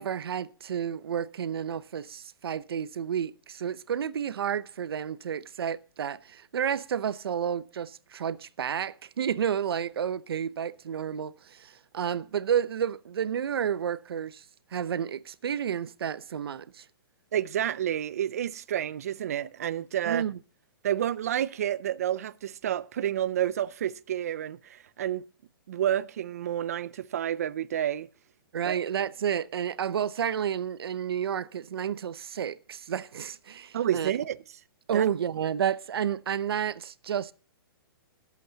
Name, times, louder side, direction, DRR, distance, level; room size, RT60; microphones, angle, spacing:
voice 1, 0.0-14.4 14.7-16.8 20.1-20.4 28.5-34.1 34.9-37.3, right 8 dB, 85° right, 0.7 m, -31 dB
voice 2, 17.3-20.3 20.8-25.3 25.7-28.1 28.6-28.8 33.7-34.4 34.9-35.1, right 10 dB, 40° right, 0.4 m, -29 dB
21.0 x 8.3 x 2.8 m
hypercardioid pair, 175°, 12 cm